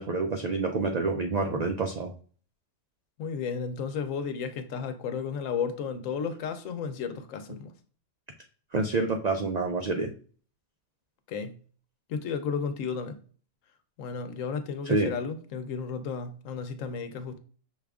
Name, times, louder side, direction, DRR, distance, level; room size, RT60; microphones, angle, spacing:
voice 1, 0.0-2.1 8.7-10.1 14.9-15.1, right 3 dB, 70° right, 0.4 m, -28 dB
voice 2, 3.2-7.7 11.3-11.6 12.1-13.2 14.0-17.4, left 6 dB, 85° left, 1.1 m, -33 dB
6.1 x 2.4 x 3.4 m
omnidirectional pair, 1.3 m